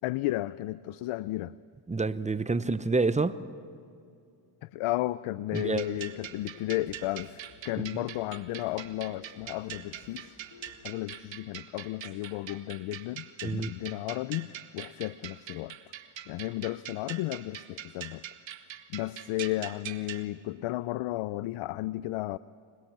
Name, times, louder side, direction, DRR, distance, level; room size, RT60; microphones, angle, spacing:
voice 1, 0.0-1.5 4.6-10.4 10.8-15.8 16.3-18.2 18.9-22.4, left 16 dB, 85° left, 16 dB, 0.6 m, -33 dB
voice 2, 1.9-3.4 5.5-6.0 7.8-7.9 13.4-13.7, right 3 dB, 15° right, 14 dB, 0.8 m, -28 dB
sound 1, 5.5-10.7, left 3 dB, 65° left, 6.8 m, -54 dB
sound 2, 5.5-20.2, right 10 dB, 65° right, 1.5 m, -43 dB
26.0 x 20.5 x 7.3 m, 2.4 s
cardioid pair, 95°, 50 cm